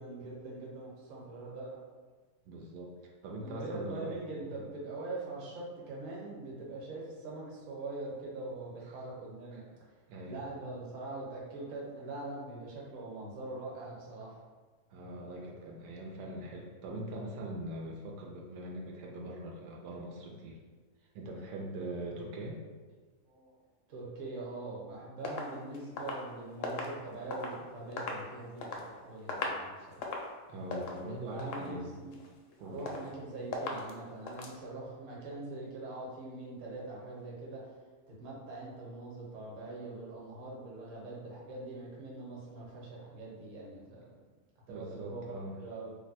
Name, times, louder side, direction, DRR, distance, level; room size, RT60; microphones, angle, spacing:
voice 1, 0.0-1.8 3.4-9.6 10.2-14.4 23.2-23.6 23.9-30.1 31.0-32.2 32.6-37.7 38.1-44.1 44.7-45.9, right 2 dB, 55° right, -4 dB, 1.2 m, -43 dB
voice 2, 2.5-4.1 4.4-4.5 10.1-10.4 14.9-20.6 21.1-22.6 30.5-31.9 32.6-33.0 44.7-45.6, right 1 dB, 90° right, -1 dB, 1.2 m, -42 dB
sound 1, 25.2-27.6 27.9-28.9 29.2-29.7 29.9-30.3 30.7-31.0 31.4-31.8 32.1-32.5 32.9-33.2 33.5-33.9 34.3-34.6, left 3 dB, 70° left, 0.8 m, -38 dB
2.9 x 2.2 x 4.0 m, 1.4 s
omnidirectional pair, 1.7 m